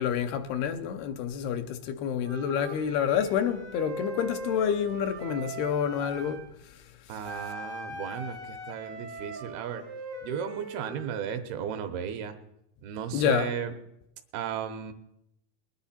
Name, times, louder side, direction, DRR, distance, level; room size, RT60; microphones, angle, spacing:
voice 1, 0.0-6.4 13.1-13.5, left 8 dB, 85° left, 2.8 m, -28 dB
Wind instrument woodwind instrument, 2.2-6.5 7.2-11.1, right 2 dB, 50° right, 0.6 m, -40 dB
voice 2, 7.1-9.8 10.2-12.4 12.8-13.7 14.3-14.9, right 8 dB, 80° right, 2.9 m, -34 dB
21.0 x 9.9 x 4.3 m
omnidirectional pair, 4.5 m